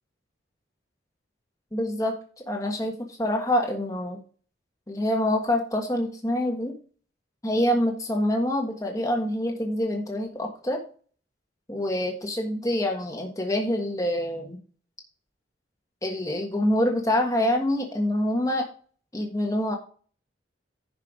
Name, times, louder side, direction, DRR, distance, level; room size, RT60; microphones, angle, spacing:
voice 1, 1.7-4.2 4.9-6.7 7.4-10.8 11.7-14.6 16.0-18.6 19.1-19.8, left 1 dB, 20° left, 1 dB, 1.5 m, -26 dB
10.5 x 5.5 x 5.1 m, 0.41 s
head